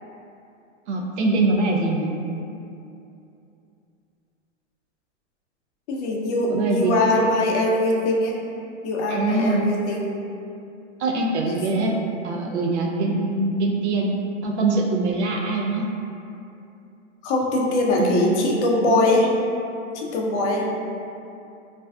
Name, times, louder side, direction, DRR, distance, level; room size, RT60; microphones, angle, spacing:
voice 1, 0.9-2.1 6.5-7.3 9.1-9.6 11.0-11.9 12.2-14.1 14.4-15.8 18.0-18.4, right 3 dB, 65° right, 0 dB, 0.5 m, -23 dB
voice 2, 5.9-8.4 8.8-10.1 11.5-11.6 17.2-19.3 19.9-20.6, left 2 dB, 65° left, -2 dB, 0.5 m, -22 dB
2.5 x 2.2 x 2.3 m, 2.7 s
hypercardioid pair, 145°, 37 cm